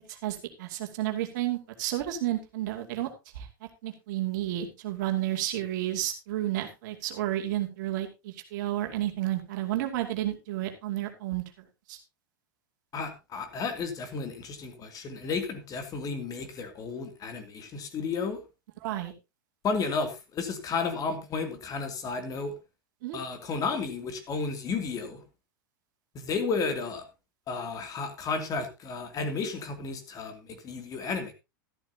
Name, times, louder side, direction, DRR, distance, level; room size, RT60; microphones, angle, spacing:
voice 1, 0.1-3.1 3.3-3.5 3.8-11.4 11.9-12.0 18.8-19.1 23.0-23.2, right 13 dB, 60° right, 4 dB, 2.5 m, -31 dB
voice 2, 12.9-18.4 19.6-22.5 23.1-25.2 26.1-27.0 27.5-31.3, left 4 dB, 30° left, 7 dB, 2.8 m, -32 dB
13.5 x 11.5 x 2.9 m, 0.25 s
hypercardioid pair, 100°, 12 cm